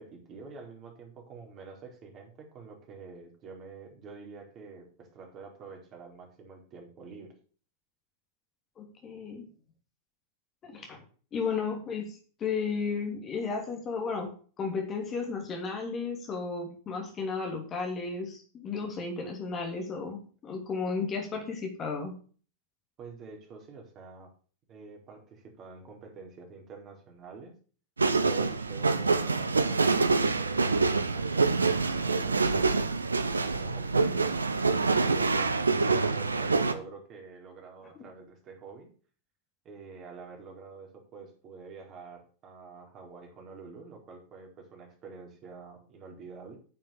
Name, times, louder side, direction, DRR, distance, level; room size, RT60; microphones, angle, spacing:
voice 1, 0.0-7.3 23.0-24.3 24.7-27.5 28.2-32.9 33.5-34.4 34.7-38.9 39.6-46.6, right 4 dB, 30° right, 1 dB, 4.4 m, -47 dB
voice 2, 8.8-9.5 10.6-11.0 11.3-14.3 14.6-22.2 37.9-38.0, left 4 dB, 25° left, 2 dB, 3.1 m, -34 dB
sound 1, 28.0-36.7, right 4 dB, 75° right, 1.0 m, -26 dB
9.5 x 7.4 x 7.1 m, 0.40 s
figure-of-eight pair, 90°, 0 cm